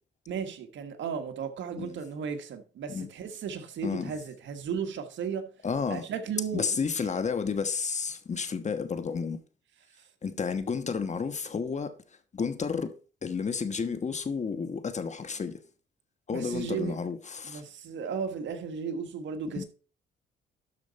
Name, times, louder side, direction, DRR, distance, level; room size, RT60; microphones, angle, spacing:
voice 1, 0.3-5.5 5.9-6.8 16.3-17.0 17.4-19.6, right 6 dB, 70° right, 1.6 m, -35 dB
voice 2, 3.8-4.1 5.6-6.1 6.5-9.4 10.2-11.9 12.3-12.9 13.2-15.6 16.3-17.6 19.5-19.6, left 5 dB, 35° left, 1.2 m, -31 dB
12.0 x 5.2 x 4.1 m
cardioid pair, 90°, 20 cm